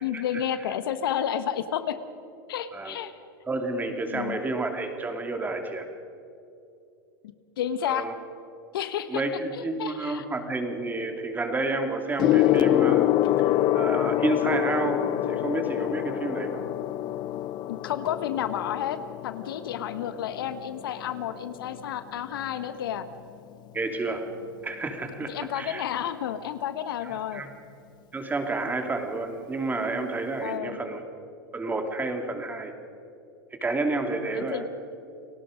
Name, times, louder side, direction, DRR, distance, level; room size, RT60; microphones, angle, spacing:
voice 1, 0.0-2.0 2.5-3.1 4.1-4.4 7.6-8.1 8.7-9.2 9.5-10.2 17.7-19.0 19.2-23.0 25.3-27.4 30.4-30.8 34.3-34.7, left 10 dB, 75° left, 11 dB, 1.2 m, -31 dB
voice 2, 3.5-5.9 7.8-8.1 9.1-16.6 23.7-24.3 24.6-25.8 27.0-27.5 28.1-31.0 31.5-32.7 33.6-34.7, right 2 dB, 15° right, 5 dB, 2.7 m, -30 dB
Gong, 12.2-22.0 22.9-23.2, left 14 dB, 35° left, 0.5 m, -26 dB
29.5 x 18.5 x 5.2 m, 2.7 s
hypercardioid pair, 110°, 12 cm